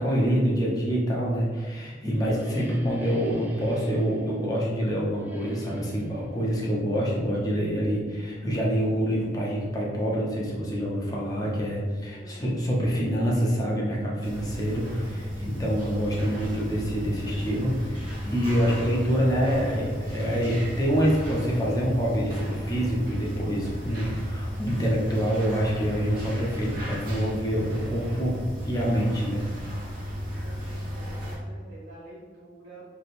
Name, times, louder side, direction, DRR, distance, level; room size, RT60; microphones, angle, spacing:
voice 1, 0.0-29.5, equal, 20° left, -4 dB, 0.8 m, -26 dB
sound 1, 1.5-8.2, equal, 10° right, 0.4 m, -42 dB
voice 2, 12.1-12.6 12.9-13.1 30.4-32.8, right 1 dB, 85° right, -12 dB, 1.2 m, -48 dB
sound 2, 14.2-31.4, equal, 55° right, 1.1 m, -34 dB
3.4 x 2.3 x 4.2 m, 1.5 s
head